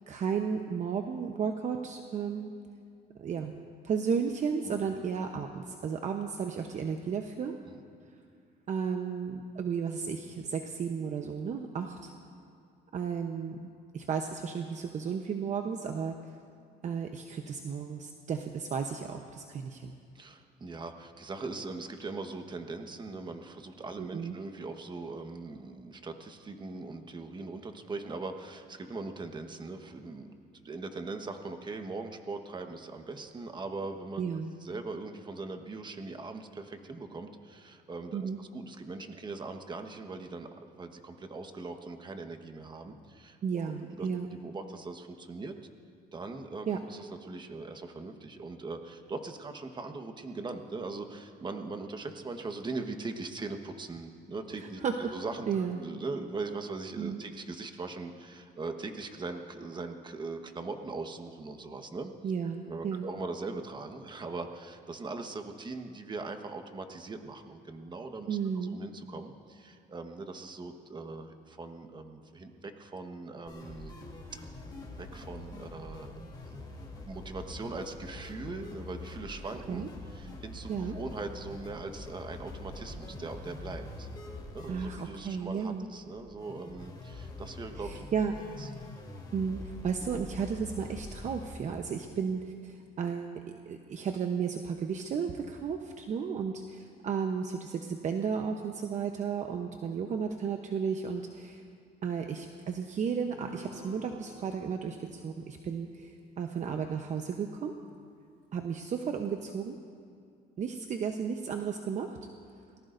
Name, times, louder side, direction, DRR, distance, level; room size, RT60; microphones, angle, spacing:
voice 1, 0.1-2.5 3.2-3.5 3.8-7.5 8.7-12.1 12.9-13.7 13.9-16.1 16.8-19.9 24.0-24.4 34.2-34.5 38.1-38.4 43.4-44.3 46.7-46.8 54.8-55.1 55.5-55.8 57.0-57.2 62.2-63.1 68.3-68.8 79.7-79.9 80.7-81.0 84.7-85.9 87.8-88.3 89.3-101.6 102.0-106.1 106.4-107.7 108.5-109.7 110.6-112.2, right 6 dB, 45° right, 4 dB, 0.9 m, -33 dB
voice 2, 20.1-34.3 34.6-43.7 44.0-45.5 46.1-54.8 55.1-62.1 62.7-73.9 75.0-76.1 76.4-84.1 84.5-88.1 88.6-88.7, right 3 dB, 25° right, 6 dB, 1.3 m, -40 dB
sound 1, 73.5-91.5, left 2 dB, 25° left, 3.3 m, -45 dB
Guitar, 103.4-108.0, left 1 dB, 65° right, 4.8 m, -53 dB
28.0 x 19.0 x 2.6 m, 2.3 s
cardioid pair, 110°, 17 cm